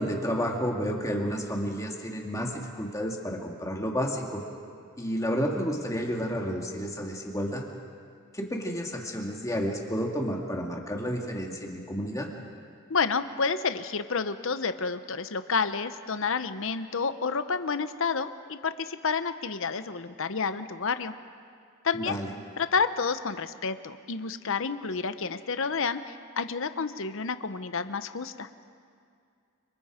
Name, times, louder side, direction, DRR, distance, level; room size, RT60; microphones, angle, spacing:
voice 1, 0.0-4.4 5.0-7.6 8.3-12.3 21.9-22.3, equal, 15° left, 0 dB, 2.4 m, -31 dB
voice 2, 12.9-21.1 21.8-22.2 22.6-28.5, left 5 dB, 60° left, 11 dB, 0.8 m, -30 dB
30.0 x 26.0 x 5.0 m, 2.3 s
head